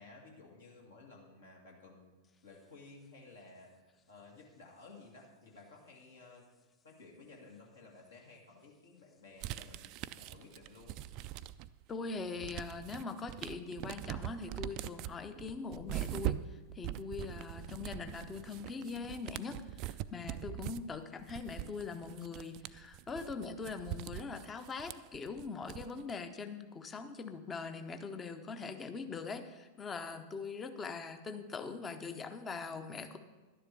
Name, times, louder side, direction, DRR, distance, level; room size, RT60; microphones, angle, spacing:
voice 1, 0.0-3.7 4.1-6.4 6.8-11.0, left 3 dB, 65° left, 0 dB, 2.3 m, -55 dB
sound 1, 9.4-11.8 12.2-26.1, right 13 dB, 40° right, 0.3 m, -42 dB
voice 2, 11.9-33.2, left 4 dB, 20° left, 9 dB, 0.8 m, -42 dB
11.5 x 10.0 x 4.6 m, 1.3 s
figure-of-eight pair, 90°, 0 cm